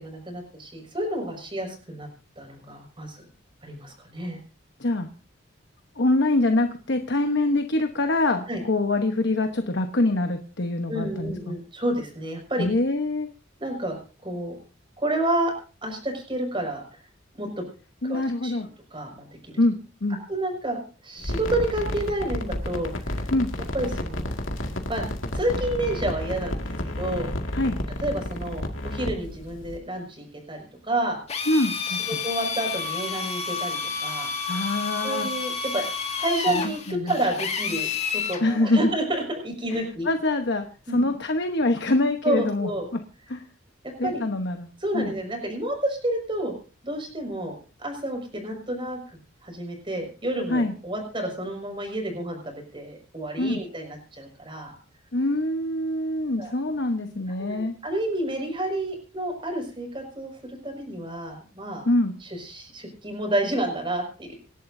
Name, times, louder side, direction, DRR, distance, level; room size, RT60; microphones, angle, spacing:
voice 1, 0.0-2.1 2.4-3.2 3.6-4.4 8.5-8.6 10.9-12.7 13.6-14.5 15.0-15.5 15.8-16.8 17.4-17.5 18.0-18.6 18.9-19.5 20.3-23.2 23.7-24.4 24.9-25.0 25.3-27.3 28.0-31.2 31.9-34.3 35.0-35.9 36.2-40.1 40.9-41.0 42.2-42.9 44.0-44.2 44.8-46.5 46.8-49.0 49.4-54.7 56.4-56.5 57.3-61.9 62.3-64.4, right 1 dB, 25° right, 3 dB, 5.7 m, -30 dB
voice 2, 6.0-11.5 12.6-13.3 18.0-18.7 19.6-20.2 23.3-23.5 27.5-27.8 31.5-32.1 34.5-35.3 36.5-36.6 36.9-37.2 38.4-38.9 39.7-43.0 43.3-43.4 44.0-44.7 44.9-45.1 50.5-50.7 53.4-53.6 55.1-57.7 61.8-62.2, left 2 dB, 60° left, 6 dB, 1.1 m, -24 dB
sound 1, 21.2-29.8, left 1 dB, 80° left, 2.1 m, -31 dB
Drill, 31.3-38.4, left 5 dB, 35° left, 2.0 m, -30 dB
27.5 x 11.5 x 2.7 m, 0.36 s
head